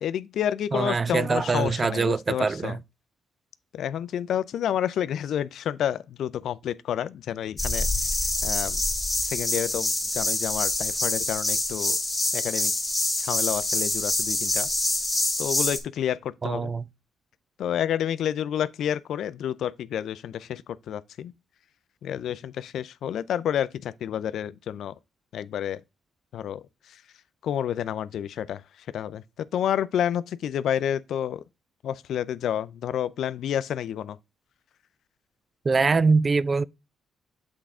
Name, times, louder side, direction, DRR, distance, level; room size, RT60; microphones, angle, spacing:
voice 1, 0.0-2.8 3.7-7.9 8.4-8.8 9.2-12.0 12.3-12.7 13.2-14.7 15.4-16.7 17.6-21.3 22.0-24.9 25.3-25.8 26.3-27.0 27.4-31.4 31.8-34.2, left 10 dB, 70° left, 0.4 m, -29 dB
voice 2, 0.7-2.8 16.4-16.8 35.6-36.6, right 4 dB, 35° right, 0.3 m, -23 dB
sound 1, 7.6-15.8, left 2 dB, 10° left, 2.1 m, -26 dB
8.0 x 3.6 x 3.6 m
cardioid pair, 90°, 0 cm